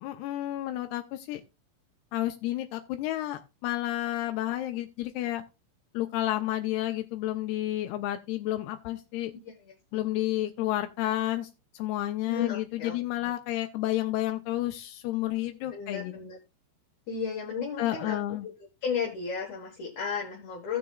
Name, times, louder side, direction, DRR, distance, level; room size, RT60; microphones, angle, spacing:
voice 1, 0.0-1.4 2.1-5.4 5.9-9.3 9.9-11.5 11.7-16.1 17.8-18.5, left 14 dB, 90° left, 6 dB, 2.3 m, -31 dB
voice 2, 12.2-13.0 15.7-16.4 17.1-18.2 18.4-18.5 18.8-20.8, left 6 dB, 60° left, -3 dB, 2.0 m, -33 dB
15.0 x 6.7 x 2.3 m, 0.27 s
omnidirectional pair, 5.4 m